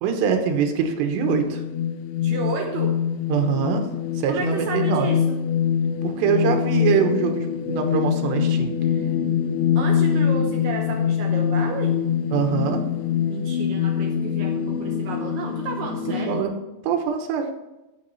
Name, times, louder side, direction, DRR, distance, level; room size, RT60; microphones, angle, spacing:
voice 1, 0.0-1.6 3.3-3.9 4.2-5.1 6.0-8.7 12.3-12.8 16.3-16.6 16.8-17.5, right 7 dB, 90° right, 5 dB, 3.3 m, -23 dB
sound 1, 1.1-16.4, left 8 dB, 85° left, 2.8 m, -24 dB
voice 2, 2.2-3.0 4.3-5.4 9.8-12.0 13.3-16.4, right 4 dB, 70° right, 2 dB, 2.2 m, -32 dB
11.0 x 8.8 x 4.1 m, 1.0 s
omnidirectional pair, 4.8 m